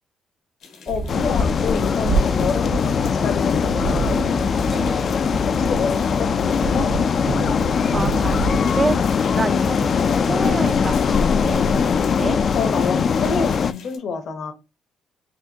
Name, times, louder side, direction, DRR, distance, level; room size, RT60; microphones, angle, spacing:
sound 1, 0.6-14.0, left 5 dB, 90° left, 1.3 m, -46 dB
voice 1, 0.9-4.3 5.5-6.9 12.6-14.5, left 5 dB, 70° left, 0.9 m, -28 dB
sound 2, 0.9-9.1, right 4 dB, 65° right, 1.3 m, -28 dB
sound 3, 1.1-13.7, left 6 dB, 50° left, 0.3 m, -21 dB
voice 2, 4.7-5.1 7.7-12.4, right 3 dB, 30° right, 0.4 m, -29 dB
5.6 x 2.5 x 2.8 m
cardioid pair, 90°, 0 cm